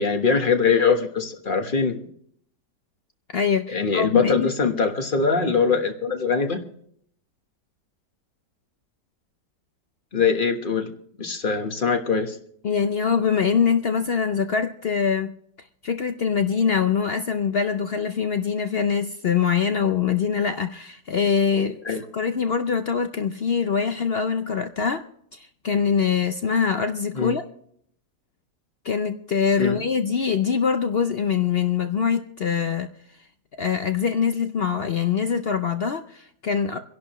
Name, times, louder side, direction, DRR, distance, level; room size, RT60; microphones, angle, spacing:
voice 1, 0.0-2.1 3.7-6.6 10.1-10.9 11.2-12.4 21.8-22.0 27.1-27.3 29.6-29.8, left 5 dB, 35° left, 5 dB, 1.3 m, -22 dB
voice 2, 3.3-4.5 12.6-15.3 15.8-25.1 25.3-27.4 28.8-32.9 33.6-36.8, left 6 dB, 70° left, 8 dB, 0.5 m, -23 dB
27.5 x 11.0 x 3.0 m, 0.66 s
omnidirectional pair, 1.8 m